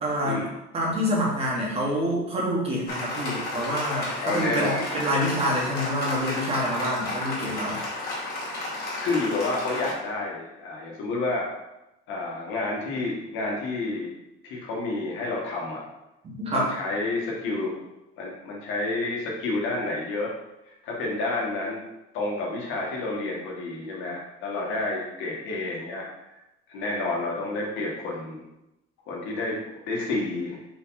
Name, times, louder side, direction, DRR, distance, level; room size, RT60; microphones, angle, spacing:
voice 1, 0.0-0.4 0.7-7.8 8.1-8.2 16.2-16.7, equal, 30° right, -3 dB, 1.6 m, -27 dB
Applause, 2.9-9.9, left 2 dB, 50° left, 2.1 m, -32 dB
voice 2, 4.2-4.9 9.0-11.5 12.1-14.1 14.4-15.8 16.5-17.7 18.2-20.3 20.7-21.8 22.1-26.1 26.3-26.4 26.7-28.4 29.1-30.6, left 2 dB, 80° left, -3 dB, 2.0 m, -29 dB
5.3 x 4.8 x 4.1 m, 0.93 s
cardioid pair, 160°, 20 cm